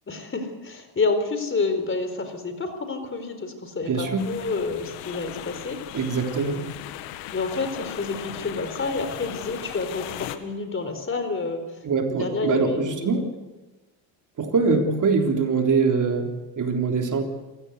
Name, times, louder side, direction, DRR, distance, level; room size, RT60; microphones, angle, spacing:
voice 1, 0.1-6.0 6.4-6.9 7.3-11.6 12.1-13.2, left 3 dB, 25° left, 8 dB, 4.2 m, -29 dB
voice 2, 3.8-4.2 5.9-6.6 11.8-13.3 14.4-17.2, right 4 dB, 40° right, 3 dB, 3.6 m, -23 dB
sound 1, 4.2-10.4, left 14 dB, 90° left, 1.7 m, -38 dB
26.0 x 16.5 x 8.2 m, 1.1 s
cardioid pair, 105°, 46 cm